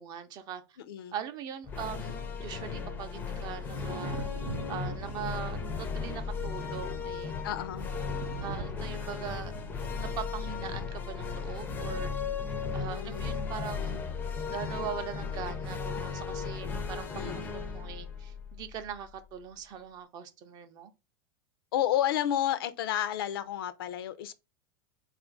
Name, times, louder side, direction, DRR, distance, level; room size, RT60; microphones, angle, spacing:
voice 1, 0.0-0.8 1.1-4.2 4.7-7.3 8.4-9.5 9.9-12.1 12.7-14.0 14.5-20.9, right 8 dB, 35° right, 0.5 m, -41 dB
voice 2, 0.8-1.2 7.4-7.9 12.8-13.3 17.1-17.4 21.7-24.3, left 11 dB, 80° left, 0.5 m, -31 dB
sound 1, 1.6-19.1, left 5 dB, 15° left, 0.4 m, -36 dB
Thunder, 2.5-16.2 17.8-18.0, right 3 dB, 75° right, 0.8 m, -47 dB
3.8 x 2.4 x 3.6 m
supercardioid pair, 145°, 12 cm